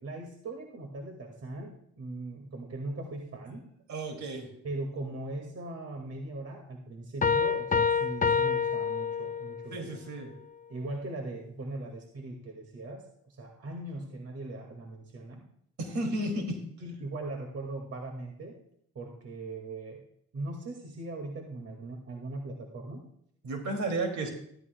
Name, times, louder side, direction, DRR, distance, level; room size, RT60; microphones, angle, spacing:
voice 1, 0.0-3.6 4.6-9.9 10.7-15.5 16.8-18.5 19.0-20.0 20.3-23.0, right 2 dB, 55° right, 2 dB, 2.0 m, -39 dB
voice 2, 3.9-4.5 9.7-10.3 15.8-16.6 23.4-24.3, right 2 dB, 70° right, 3 dB, 2.5 m, -32 dB
sound 1, 7.2-9.7, left 6 dB, 25° left, 0.5 m, -27 dB
13.5 x 12.5 x 2.2 m, 0.68 s
cardioid pair, 90°, 30 cm